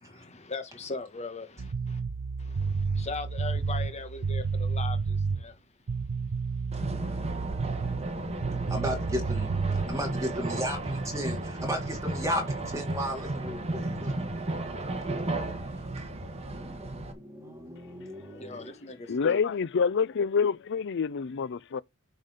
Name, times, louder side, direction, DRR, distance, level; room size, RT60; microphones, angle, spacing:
voice 1, 0.0-2.0 2.4-5.6 18.3-19.4, left 3 dB, 30° left, 1.3 m, -39 dB
sound 1, 1.6-5.5 5.9-8.1 8.4-9.9, right 4 dB, 75° right, 0.7 m, -30 dB
sound 2, 6.7-17.1, right 2 dB, 30° right, 1.4 m, -34 dB
voice 2, 8.7-14.5 16.4-19.0, equal, 15° right, 3.3 m, -35 dB
voice 3, 19.1-21.8, left 6 dB, 55° left, 0.5 m, -27 dB
10.0 x 4.1 x 5.0 m
head